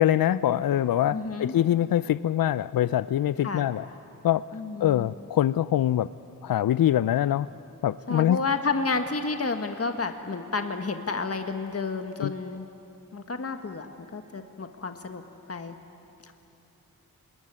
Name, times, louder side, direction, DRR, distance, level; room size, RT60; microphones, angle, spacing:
voice 1, 0.0-3.8 4.2-4.4 4.8-6.1 6.4-7.5 7.8-8.4 12.2-12.3, left 11 dB, 65° left, 16 dB, 0.5 m, -24 dB
voice 2, 1.1-1.5 3.4-3.7 4.5-5.1 8.1-12.7 13.1-15.2 15.5-15.8 16.2-16.3, left 4 dB, 40° left, 6 dB, 1.6 m, -31 dB
27.0 x 21.0 x 9.6 m, 2.9 s
cardioid pair, 40°, 37 cm